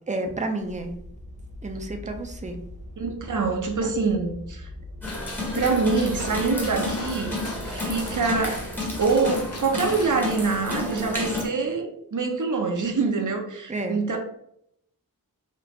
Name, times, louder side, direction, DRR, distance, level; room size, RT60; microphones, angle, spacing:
voice 1, 0.1-1.0 1.6-2.6 3.8-3.9 13.7-14.0, right 2 dB, 20° right, 6 dB, 0.5 m, -30 dB
sound 1, 0.6-9.1, left 1 dB, 90° right, 1.3 m, -41 dB
voice 2, 3.0-4.7 5.5-7.4 7.6-8.6 9.0-14.2, right 4 dB, 55° right, 3 dB, 0.7 m, -25 dB
sound 2, 5.0-11.5, left 2 dB, 5° left, 0.9 m, -31 dB
Gunshot gunfire, 5.1-10.5, left 1 dB, 45° left, 0.7 m, -39 dB
3.3 x 2.4 x 3.0 m, 0.73 s
wide cardioid pair, 55°, 36 cm